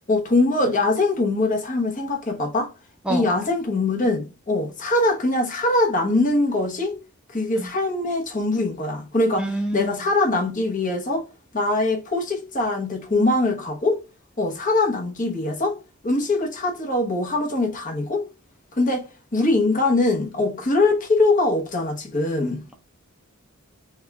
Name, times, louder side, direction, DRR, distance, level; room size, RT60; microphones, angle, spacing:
voice 1, 0.1-2.7 3.1-7.0 7.3-11.2 11.5-14.0 14.4-15.8 16.0-18.2 18.8-19.1 19.3-22.6, left 2 dB, 40° left, 1.1 m, -22 dB
voice 2, 9.4-9.9, right 1 dB, 5° right, 0.6 m, -26 dB
3.5 x 3.5 x 3.6 m
head